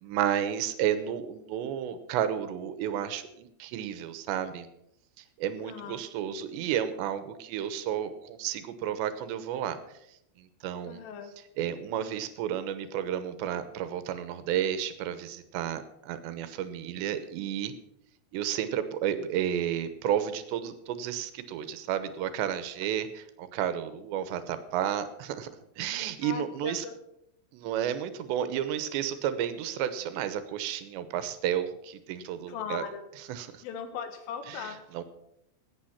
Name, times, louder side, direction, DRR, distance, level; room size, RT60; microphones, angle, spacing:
voice 1, 0.0-4.7 5.2-9.8 10.1-11.0 11.6-17.7 18.3-25.5 25.8-26.8 27.5-32.8 33.3-33.6 34.5-34.6 34.9-35.0, right 10 dB, 75° right, 11 dB, 2.9 m, -32 dB
voice 2, 5.6-6.0 10.8-11.3 22.8-22.9 26.2-27.0 32.5-33.1 33.6-34.8, left 7 dB, 75° left, 8 dB, 4.1 m, -39 dB
18.5 x 8.5 x 5.8 m, 0.79 s
omnidirectional pair, 5.8 m